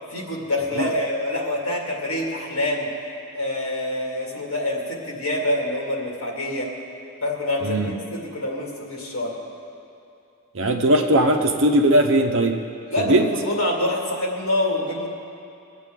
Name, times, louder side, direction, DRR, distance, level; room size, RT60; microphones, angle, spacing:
voice 1, 0.1-2.9 3.3-6.7 7.2-9.4 12.9-15.1, left 1 dB, 75° left, -2 dB, 2.3 m, -26 dB
voice 2, 7.6-7.9 10.5-12.6 13.0-13.2, right 1 dB, 60° right, 4 dB, 0.9 m, -19 dB
22.0 x 8.2 x 3.8 m, 2.7 s
head